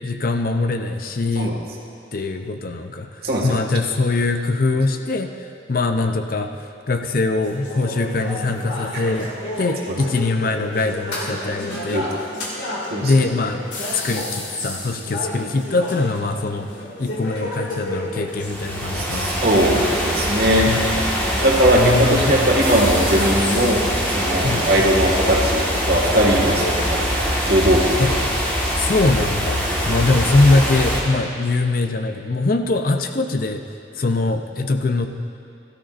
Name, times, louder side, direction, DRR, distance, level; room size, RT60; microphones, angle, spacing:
voice 1, 0.0-1.5 2.1-5.3 5.7-9.3 9.6-12.0 13.0-13.6 13.9-16.7 17.0-19.4 20.7-20.8 21.7-22.4 24.4-24.7 28.0-28.1 28.8-33.6 34.0-35.1, left 3 dB, 50° left, 6 dB, 0.5 m, -22 dB
sound 1, 7.3-26.9, left 1 dB, 85° left, 2.4 m, -31 dB
voice 2, 11.9-12.2 12.9-13.1 18.9-20.7 21.4-27.1 27.4-28.0, equal, 55° right, -2 dB, 1.8 m, -19 dB
sound 2, 18.3-31.0, equal, 10° left, 1.5 m, -23 dB
16.5 x 13.0 x 2.5 m, 2.4 s
head